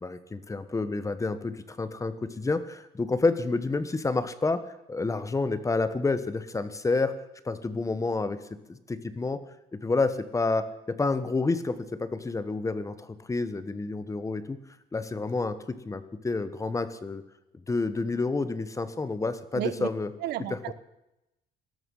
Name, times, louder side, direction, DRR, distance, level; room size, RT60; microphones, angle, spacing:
voice 1, 0.0-4.6 4.9-7.1 7.4-8.4 8.7-9.4 9.8-14.6 14.9-17.2 17.7-20.1 20.5-20.6, left 3 dB, 20° left, 12 dB, 1.2 m, -29 dB
voice 2, 19.5-19.9 20.2-20.7, right 13 dB, 80° right, 15 dB, 1.0 m, -32 dB
17.5 x 13.0 x 5.6 m, 0.89 s
cardioid pair, 110°, 17 cm